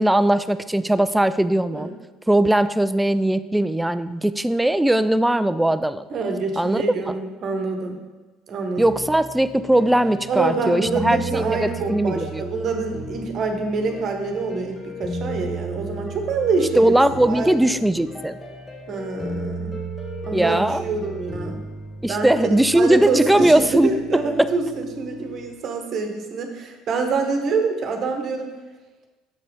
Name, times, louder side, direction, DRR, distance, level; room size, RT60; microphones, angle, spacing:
voice 1, 0.0-1.9 2.3-6.0 6.6-7.2 8.8-12.4 16.8-18.4 20.3-20.8 22.0-23.9 24.4-24.5, right 1 dB, 5° right, 13 dB, 0.3 m, -19 dB
voice 2, 6.1-8.0 8.5-9.0 10.3-16.9 17.3-17.8 18.9-19.8 20.3-21.6 22.1-22.5 22.7-28.5, right 4 dB, 45° right, 4 dB, 1.1 m, -26 dB
sound 1, 8.8-25.5, right 1 dB, 20° left, 1.6 m, -34 dB
7.0 x 4.9 x 4.8 m, 1.2 s
figure-of-eight pair, 60°, 0 cm